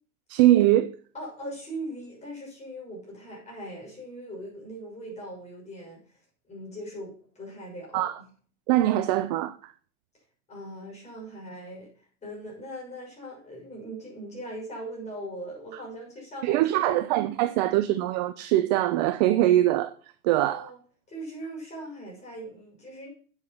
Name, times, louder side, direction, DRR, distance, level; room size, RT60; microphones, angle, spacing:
voice 1, 0.3-0.9 7.9-8.2 8.7-9.7 16.4-19.9 20.2-20.7, right 14 dB, 30° right, 0.4 m, -22 dB
voice 2, 1.1-6.0 6.5-8.2 10.5-11.9 12.2-17.0 20.3-20.8 21.1-23.1, right 1 dB, 15° left, 6.1 m, -40 dB
8.7 x 8.0 x 5.7 m
supercardioid pair, 140°, 45 cm